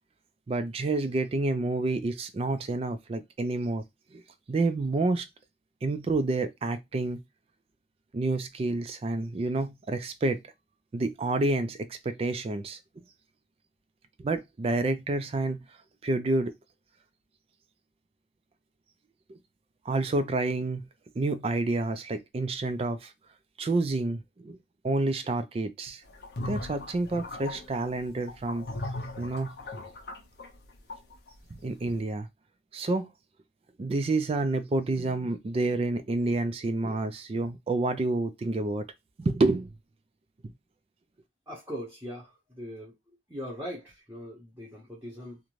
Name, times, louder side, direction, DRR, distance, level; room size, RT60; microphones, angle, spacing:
voice 1, 0.5-3.8 4.1-4.2 4.5-5.3 5.8-7.2 8.1-10.4 10.9-13.0 14.2-15.6 16.0-16.5 19.3-19.4 19.9-20.9 21.1-23.1 23.6-24.6 24.8-26.0 26.4-28.7 29.2-29.5 31.5-32.3 32.7-33.1 33.8-38.9 39.2-39.7 40.4-40.5, right 2 dB, 30° right, 0.3 m, -29 dB
sound 1, 26.1-31.4, left 2 dB, 55° left, 0.6 m, -38 dB
voice 2, 41.5-42.9 43.3-45.4, equal, 10° right, 0.7 m, -40 dB
2.5 x 2.1 x 3.0 m
head